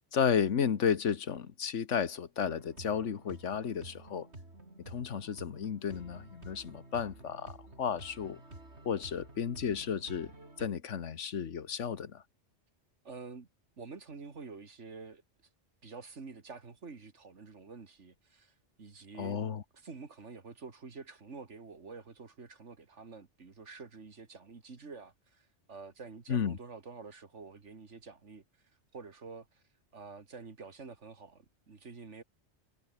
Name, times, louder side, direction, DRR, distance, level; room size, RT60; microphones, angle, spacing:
voice 1, 0.1-4.3 4.9-8.4 8.8-10.3 10.6-12.2 19.2-19.6 26.3-26.6, left 7 dB, 90° left, 1.6 m, -33 dB
sound 1, 2.4-10.7, right 2 dB, 65° right, 5.7 m, -51 dB
voice 2, 13.0-13.5 13.8-15.2 15.8-19.4 19.7-28.4 28.9-29.6 29.9-32.2, right 4 dB, 85° right, 2.5 m, -48 dB
omnidirectional pair, 1.2 m